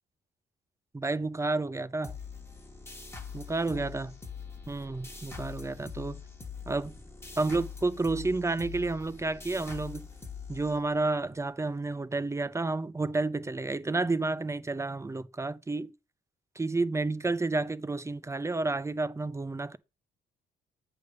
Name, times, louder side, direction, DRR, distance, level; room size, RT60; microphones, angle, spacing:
voice 1, 0.9-2.1 3.3-4.1 4.7-6.2 6.7-6.9 7.4-10.1 10.5-15.9 16.6-19.8, right 3 dB, 15° right, 0.6 m, -30 dB
sound 1, 2.0-11.3, left 5 dB, 10° left, 1.3 m, -43 dB
8.3 x 3.4 x 6.6 m
cardioid pair, 90°, 20 cm